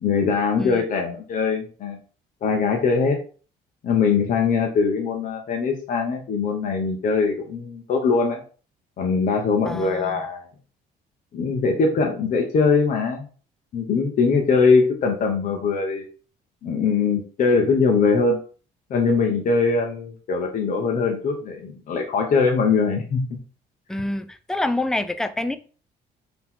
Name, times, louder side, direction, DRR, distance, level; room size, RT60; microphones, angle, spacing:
voice 1, 0.0-2.0 2.4-3.2 3.8-8.4 9.0-10.5 11.3-13.3 13.7-16.1 16.6-18.4 18.9-23.2, left 4 dB, 50° left, 0.9 m, -21 dB
voice 2, 9.7-10.2 23.9-25.6, left 2 dB, 5° left, 0.4 m, -27 dB
4.1 x 2.9 x 3.7 m
cardioid pair, 110°, 17 cm